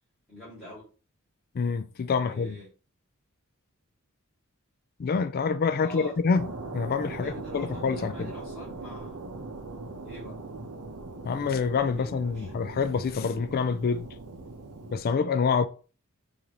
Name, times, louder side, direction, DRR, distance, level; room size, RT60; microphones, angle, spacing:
voice 1, 0.3-0.9 2.2-2.7 5.8-6.2 7.1-9.2 10.0-10.4 12.0-12.5, left 1 dB, ahead, 2.0 m, -45 dB
voice 2, 1.5-2.6 5.0-8.3 11.2-14.1 14.9-15.7, left 5 dB, 45° left, 0.4 m, -27 dB
sound 1, 6.3-15.0, right 3 dB, 85° right, 0.7 m, -40 dB
4.8 x 2.7 x 2.9 m
head